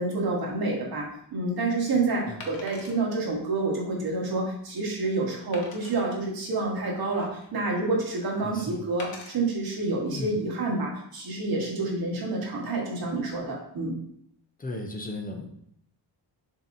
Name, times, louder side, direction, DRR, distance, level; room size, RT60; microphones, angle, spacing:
voice 1, 0.0-13.9, right 3 dB, 60° right, -2 dB, 1.3 m, -28 dB
Wood, 0.8-1.0 2.4-3.0 3.6-3.7 4.2-4.3 5.5-6.0 6.8-7.6 9.0-9.3 10.1-10.3, left 3 dB, 55° left, 0.9 m, -43 dB
voice 2, 8.4-8.8 10.1-10.3 14.6-15.5, left 2 dB, 20° left, 2 dB, 0.4 m, -36 dB
6.9 x 2.8 x 2.6 m, 0.69 s
wide cardioid pair, 180°, 42 cm